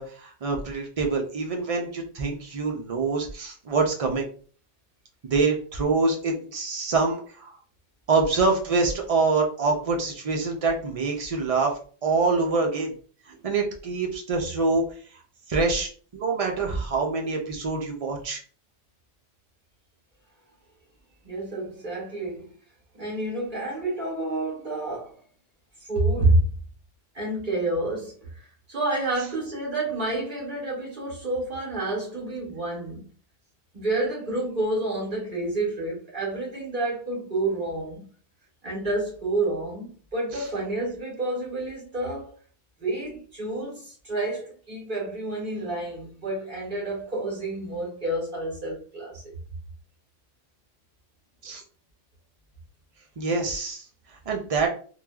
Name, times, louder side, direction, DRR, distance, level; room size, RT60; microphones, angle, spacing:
voice 1, 0.0-4.3 5.2-7.5 8.1-12.9 13.4-14.8 15.5-18.4 51.4-51.6 53.2-53.8 54.3-54.7, right 4 dB, 65° right, 0.3 m, -25 dB
voice 2, 21.2-22.5 22.9-25.1 25.9-26.5 27.1-33.1 33.7-38.0 38.6-42.3 42.8-49.2, right 2 dB, 45° right, 1.5 m, -29 dB
3.1 x 2.2 x 2.3 m
omnidirectional pair, 1.3 m